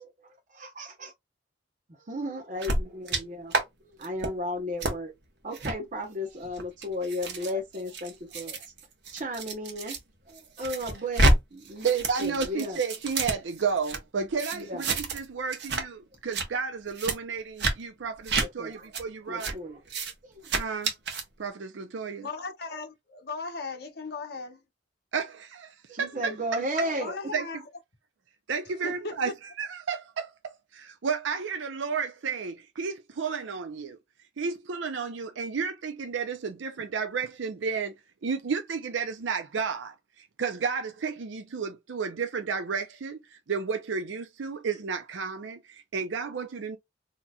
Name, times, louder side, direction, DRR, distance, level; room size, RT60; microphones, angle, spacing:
voice 1, 0.6-1.1 2.1-5.1 5.4-8.6 9.1-9.9 10.3-12.8 14.5-14.8 18.4-18.9 19.3-19.8 20.2-20.5 25.9-27.1, equal, 45° right, 0.8 m, -34 dB
sound 1, 2.6-3.2 3.5-3.6 4.0-4.3 4.8-4.9 5.5-5.7 6.4-10.0 10.3-11.4 11.6-14.0 14.4-15.3 15.5-15.8 16.1-16.5 17.0-17.2 17.6-17.7 18.3-18.5 18.9-19.0 19.4-19.5 19.9-20.1 20.4-21.2, right 2 dB, 65° right, 1.1 m, -28 dB
voice 2, 11.8-19.6 20.5-20.9 21.4-22.3 25.1-26.9 27.3-27.5 28.5-34.0 34.4-37.9 38.2-46.8, right 5 dB, 90° right, 0.5 m, -32 dB
voice 3, 22.2-24.6 27.0-27.7 28.8-29.3, left 3 dB, 55° left, 1.0 m, -37 dB
4.0 x 2.9 x 2.3 m
head